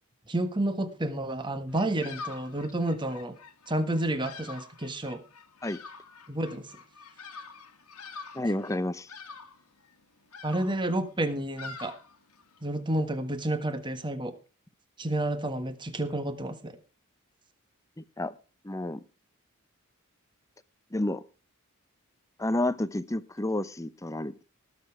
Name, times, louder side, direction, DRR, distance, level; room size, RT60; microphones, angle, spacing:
voice 1, 0.3-3.4 3.7-5.2 6.3-6.7 10.4-11.9 12.6-14.3 15.0-16.7, right 1 dB, 20° right, 1.5 m, -30 dB
Bird vocalization bird call bird song, 1.7-12.7, left 4 dB, 80° left, 1.8 m, -46 dB
voice 2, 8.3-9.1 18.0-18.3 18.6-19.0 20.9-21.2 22.4-24.3, left 1 dB, 15° left, 0.7 m, -30 dB
19.0 x 6.9 x 4.8 m
head